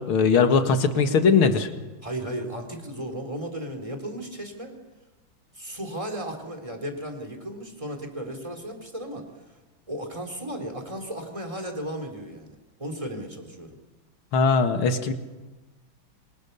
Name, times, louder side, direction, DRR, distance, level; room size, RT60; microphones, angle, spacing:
voice 1, 0.0-1.7 14.3-15.1, left 5 dB, 85° left, 7 dB, 2.6 m, -20 dB
voice 2, 2.0-4.7 5.5-9.2 9.5-9.6 9.9-13.8, right 1 dB, 15° right, 4 dB, 3.8 m, -35 dB
27.0 x 25.5 x 6.9 m, 1.2 s
omnidirectional pair, 2.2 m